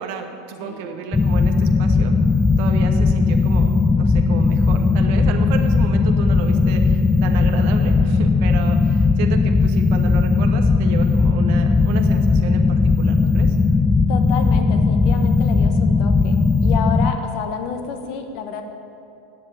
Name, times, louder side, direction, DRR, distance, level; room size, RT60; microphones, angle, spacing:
voice 1, 0.0-2.1 2.6-13.6, right 6 dB, 60° right, 5 dB, 1.2 m, -33 dB
sound 1, 1.1-17.1, left 4 dB, 20° left, 0.5 m, -17 dB
voice 2, 14.1-18.6, left 6 dB, 55° left, 6 dB, 1.2 m, -29 dB
9.6 x 7.5 x 9.1 m, 2.7 s
hypercardioid pair, 85°, 0 cm